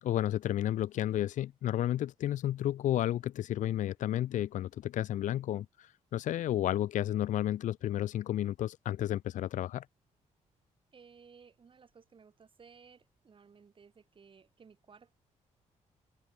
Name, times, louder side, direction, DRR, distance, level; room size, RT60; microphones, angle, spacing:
voice 1, 0.0-9.8, left 12 dB, 70° left, 0.6 m, -32 dB
voice 2, 10.9-15.1, right 6 dB, 40° right, 6.4 m, -58 dB
open air
cardioid pair, 110°, 13 cm